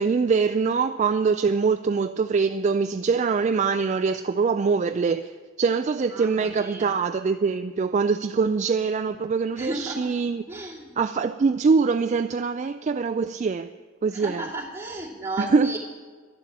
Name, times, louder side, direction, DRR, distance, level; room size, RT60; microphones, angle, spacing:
voice 1, 0.0-10.4 11.0-13.7 14.0-14.5 15.4-15.7, right 5 dB, 35° right, 0.3 m, -23 dB
voice 2, 6.1-7.0 9.6-10.1 10.5-11.0 14.1-15.8, right 2 dB, 10° right, 2.4 m, -34 dB
11.5 x 11.5 x 7.4 m
head